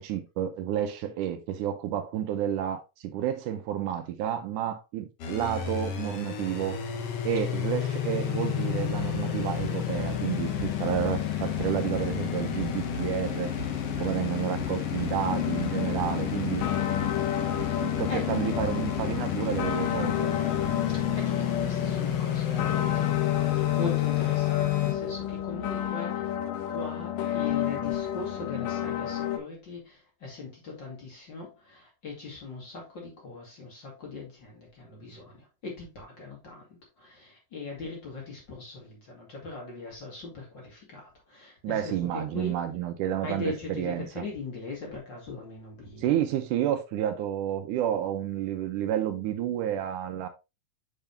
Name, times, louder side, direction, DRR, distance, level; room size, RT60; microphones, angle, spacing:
voice 1, 0.0-6.8 7.2-13.5 14.0-16.6 17.8-20.4 41.6-44.3 46.0-50.3, right 10 dB, 75° right, 2.2 m, -30 dB
sound 1, 5.2-24.9, left 10 dB, 60° left, 1.7 m, -30 dB
sound 2, 8.7-25.9, right 1 dB, 45° right, 2.3 m, -42 dB
sound 3, 15.3-29.4, left 11 dB, 85° left, 2.5 m, -31 dB
voice 2, 16.0-17.2 17.6-18.5 20.5-23.2 23.5-26.3 26.7-42.6 43.2-46.1, left 3 dB, 35° left, 2.5 m, -40 dB
6.9 x 6.5 x 2.7 m
omnidirectional pair, 3.8 m